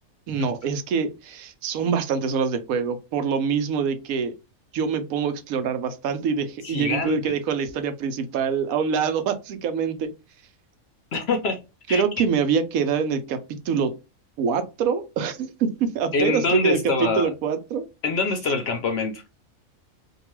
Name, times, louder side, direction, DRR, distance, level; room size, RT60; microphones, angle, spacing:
voice 1, 0.3-4.4 4.7-10.1 11.9-13.4 13.7-13.9 14.4-17.8, right 6 dB, 85° right, 1.0 m, -25 dB
voice 2, 6.6-7.3 11.1-11.6 11.9-12.0 16.1-17.3 18.0-19.2, left 4 dB, 65° left, 0.6 m, -25 dB
2.8 x 2.3 x 3.0 m
omnidirectional pair, 1.4 m